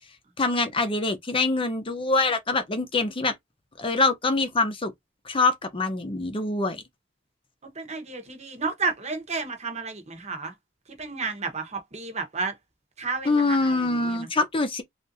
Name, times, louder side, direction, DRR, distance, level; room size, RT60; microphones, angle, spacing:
voice 1, 0.4-3.3 3.8-4.9 5.3-6.8 13.2-14.8, left 3 dB, 25° left, 0.7 m, -24 dB
voice 2, 7.8-10.5 11.0-12.5 13.0-13.8 14.0-14.3, right 4 dB, 35° right, 1.0 m, -31 dB
3.5 x 2.6 x 2.6 m
head